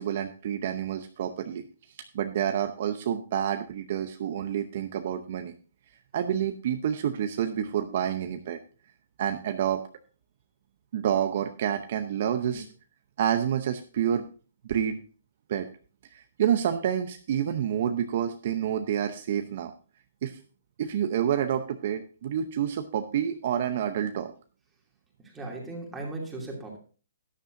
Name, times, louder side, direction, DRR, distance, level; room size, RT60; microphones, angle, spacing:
voice 1, 0.0-1.6 2.1-5.5 6.1-8.6 9.2-9.8 10.9-12.7 13.2-14.3 14.6-15.0 15.5-15.7 16.1-19.7 20.2-20.4 20.8-24.3, right 9 dB, 45° right, 7 dB, 0.7 m, -28 dB
voice 2, 25.2-26.8, right 2 dB, 5° right, -2 dB, 2.7 m, -37 dB
13.0 x 10.0 x 2.6 m, 0.37 s
hypercardioid pair, 160°, 0 cm